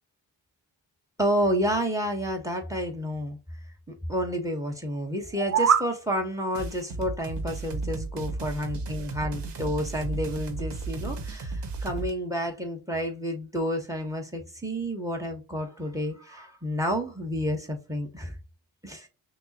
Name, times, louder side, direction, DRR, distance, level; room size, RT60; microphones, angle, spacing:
voice 1, 1.2-3.4 3.9-18.4 18.8-19.1, equal, 5° right, 4 dB, 1.3 m, -30 dB
sound 1, 5.2-5.9, right 7 dB, 35° right, 0.5 m, -23 dB
sound 2, 6.5-12.1, right 3 dB, 60° right, 1.0 m, -34 dB
5.9 x 2.1 x 2.9 m, 0.32 s
supercardioid pair, 40°, 49 cm